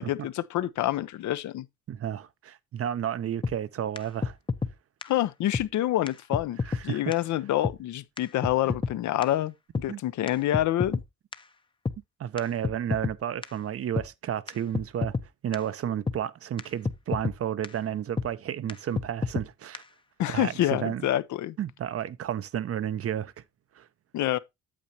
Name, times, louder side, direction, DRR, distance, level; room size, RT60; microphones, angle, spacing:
voice 1, 0.0-1.7 5.0-11.0 20.2-21.6 24.1-24.4, left 13 dB, 70° left, 0.7 m, -27 dB
voice 2, 1.9-4.4 6.6-7.0 9.9-10.0 12.2-15.1 15.4-19.8 20.3-21.1 21.6-23.3 23.8-23.9, right 10 dB, 50° right, 0.6 m, -32 dB
sound 1, 3.4-3.6 4.0-4.1 4.2-4.7 5.0-5.1 5.5-5.7 6.1-6.2 6.3-6.8 7.1-7.2 7.6-7.8 8.2-8.3 8.4-8.9 9.2-9.3 9.7-9.9 10.3-11.1 11.3-11.4 11.9-12.0 12.4-12.5 12.6-13.2 13.4-13.5 14.0-14.1 14.5-14.6 14.7-15.3 15.5-15.6 16.1-16.2 16.6-16.7 16.9-17.4 17.6-17.7 18.2-18.3 18.7-18.8 19.0-19.5 19.7-19.8, left 4 dB, 15° left, 0.6 m, -29 dB
8.7 x 7.7 x 2.7 m
cardioid pair, 90°, 30 cm